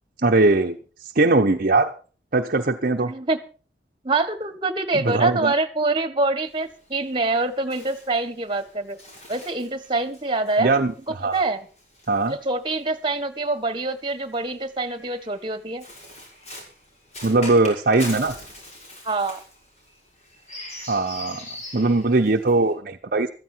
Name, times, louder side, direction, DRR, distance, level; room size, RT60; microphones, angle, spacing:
voice 1, 0.2-1.9 2.3-3.1 4.9-5.5 10.6-11.4 12.1-12.4 17.2-18.3 20.9-21.4 21.7-23.3, right 2 dB, 55° right, 3 dB, 0.9 m, -20 dB
voice 2, 3.0-3.4 4.0-9.0 9.3-10.7 11.1-11.7 12.3-15.8 19.0-19.4, right 3 dB, 30° right, 12 dB, 1.7 m, -25 dB
Bird, 6.5-13.0 13.9-22.7, left 1 dB, 40° left, 6.3 m, -42 dB
15.5 x 14.0 x 4.6 m, 0.38 s
head